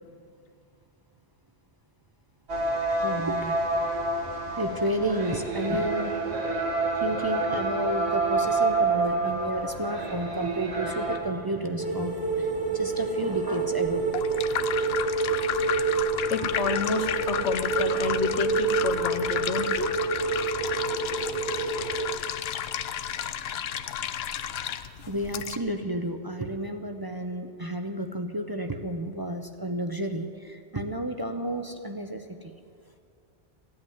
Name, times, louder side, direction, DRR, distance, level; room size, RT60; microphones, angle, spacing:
sound 1, 2.5-11.2, right 3 dB, 70° right, 1.9 m, -28 dB
voice 1, 3.0-3.6 4.6-6.3 7.0-14.1 25.1-32.5, right 1 dB, 25° right, 5 dB, 0.6 m, -31 dB
sound 2, 11.8-22.1, right 4 dB, 55° right, 1.7 m, -28 dB
sound 3, 13.8-25.6, left 9 dB, 70° left, 0.8 m, -32 dB
voice 2, 16.3-19.9, left 5 dB, 90° left, 10 dB, 1.2 m, -30 dB
15.5 x 8.8 x 9.4 m, 2.4 s
omnidirectional pair, 1.1 m